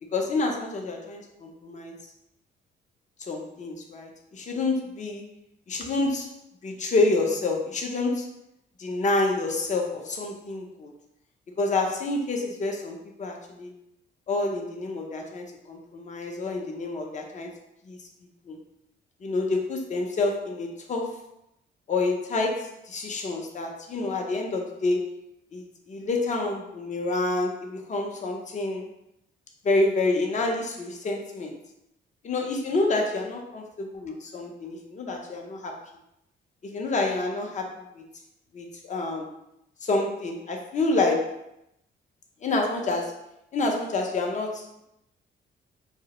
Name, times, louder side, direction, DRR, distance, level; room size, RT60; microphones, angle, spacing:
voice 1, 0.0-1.9 3.3-5.3 5.7-6.3 6.6-8.3 8.8-10.9 11.6-13.7 14.3-17.5 17.9-18.0 18.5-18.6 19.2-21.2 21.9-25.1 25.5-28.9 29.6-31.5 32.2-35.8 36.6-38.0 38.5-39.3 39.8-41.4 42.4-43.1 43.5-44.8, left 2 dB, 35° left, 2 dB, 0.5 m, -28 dB
2.2 x 2.0 x 2.8 m, 0.82 s
cardioid pair, 90°, 20 cm